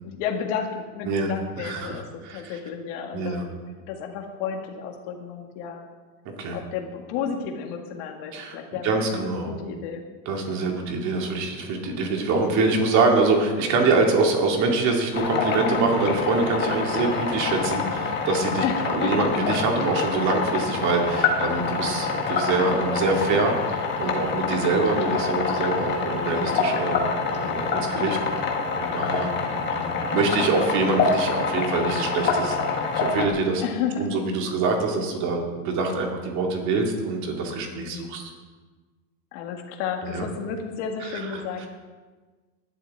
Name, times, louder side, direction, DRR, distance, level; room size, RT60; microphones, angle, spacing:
voice 1, 0.0-3.6 3.9-5.8 6.5-10.0 10.6-11.0 18.6-19.3 24.9-25.2 28.0-28.3 29.3-29.7 33.6-34.1 37.7-38.2 39.3-41.7, left 7 dB, 50° left, 3 dB, 2.0 m, -32 dB
voice 2, 1.0-2.6 3.1-3.4 6.4-6.6 8.3-8.6 8.8-9.5 10.3-28.2 28.8-29.3 29.7-32.6 32.9-33.6 34.0-38.3 40.0-40.3 41.0-41.7, right 3 dB, 35° right, 2 dB, 2.2 m, -25 dB
sound 1, 15.1-33.3, left 5 dB, 25° left, 1.4 m, -26 dB
19.0 x 12.0 x 3.6 m, 1.4 s
supercardioid pair, 170°, 48 cm